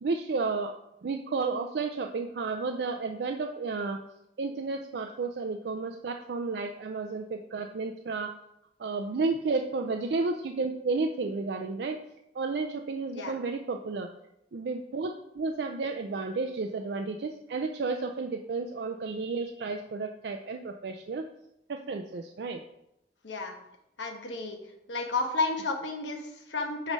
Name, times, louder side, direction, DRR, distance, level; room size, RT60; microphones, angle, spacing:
voice 1, 0.0-0.7 1.0-4.0 4.4-8.3 8.8-12.0 12.4-14.1 14.5-21.3 21.7-22.6, right 3 dB, 65° right, 5 dB, 0.4 m, -32 dB
voice 2, 23.2-23.5 24.0-24.6 24.9-26.9, left 3 dB, 80° left, 4 dB, 1.1 m, -32 dB
8.6 x 3.2 x 5.3 m, 0.83 s
head